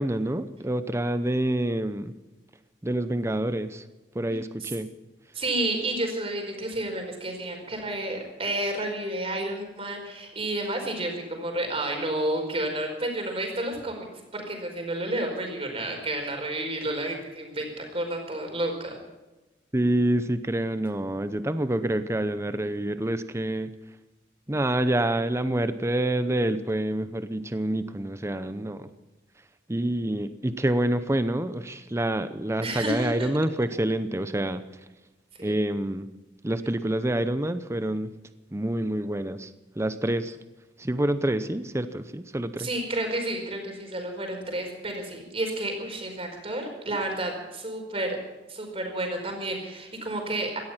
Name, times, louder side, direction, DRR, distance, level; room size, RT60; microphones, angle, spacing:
voice 1, 0.0-2.2 2.8-3.9 4.1-4.9 19.7-23.7 24.5-28.9 29.7-34.6 35.4-36.1 36.4-38.2 38.5-39.5 39.8-40.4 40.8-42.7, right 1 dB, 15° right, 11 dB, 0.7 m, -27 dB
voice 2, 5.3-14.1 14.3-18.9 32.6-33.3 35.4-35.5 42.6-48.2 48.5-50.6, right 1 dB, 35° right, 3 dB, 4.8 m, -31 dB
17.5 x 13.5 x 5.8 m, 1.1 s
head